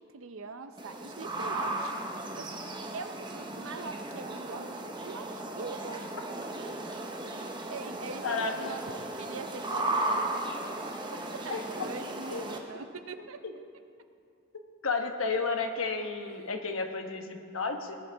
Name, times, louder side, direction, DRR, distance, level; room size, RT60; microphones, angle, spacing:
voice 1, 0.0-1.9 2.3-2.6 2.9-6.1 7.7-8.8 9.2-10.8 11.1-13.4, right 4 dB, 85° right, 9 dB, 0.7 m, -43 dB
sound 1, 0.8-12.6, right 2 dB, 20° right, 0.9 m, -36 dB
voice 2, 8.2-8.8 11.5-11.6 12.3-12.5 14.8-18.0, left 4 dB, 90° left, 5 dB, 1.1 m, -32 dB
19.0 x 10.5 x 3.5 m, 2.5 s
head